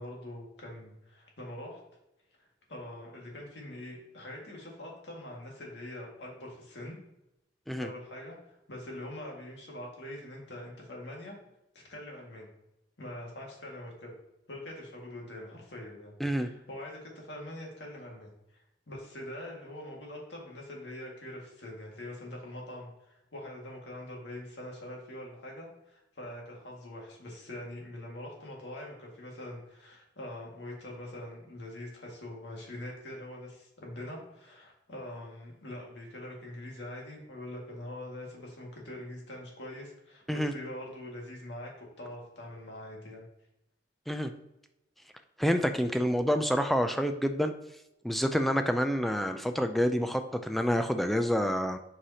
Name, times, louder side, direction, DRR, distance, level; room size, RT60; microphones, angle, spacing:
voice 1, 0.0-1.8 2.7-7.0 7.7-11.4 11.7-12.5 13.0-14.2 14.5-43.2, left 1 dB, 80° left, -2 dB, 1.9 m, -43 dB
voice 2, 45.4-47.5 48.0-51.8, equal, ahead, 7 dB, 0.3 m, -28 dB
7.6 x 4.9 x 2.8 m, 0.89 s
head